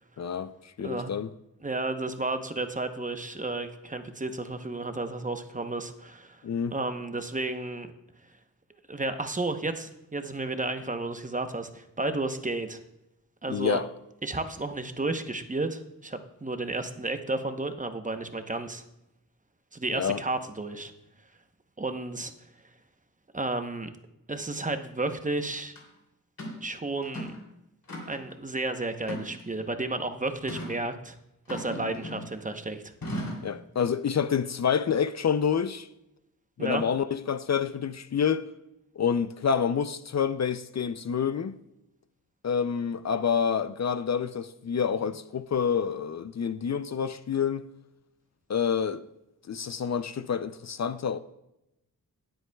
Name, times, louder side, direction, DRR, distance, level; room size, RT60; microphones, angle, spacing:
voice 1, 0.2-1.3 6.4-6.7 13.5-13.9 19.9-20.2 33.4-35.9 36.6-38.5 39.0-41.6 42.4-47.7 48.5-49.0 49.5-51.2, left 7 dB, 50° left, 0.5 m, -28 dB
voice 2, 1.6-6.4 6.7-7.9 8.9-12.8 13.4-13.8 14.2-18.8 19.7-20.9 21.8-22.3 23.3-23.9 24.3-25.7 26.6-27.3 28.0-31.2 31.5-32.8 36.6-36.8, right 2 dB, 25° right, 0.9 m, -32 dB
sound 1, 25.8-25.9 26.4-26.6 27.0-27.4 27.9-28.3 29.0-29.7 30.5-30.8 31.5-32.4 33.0-33.5, equal, 85° left, 3.1 m, -37 dB
20.0 x 7.9 x 2.3 m
wide cardioid pair, 75°, 34 cm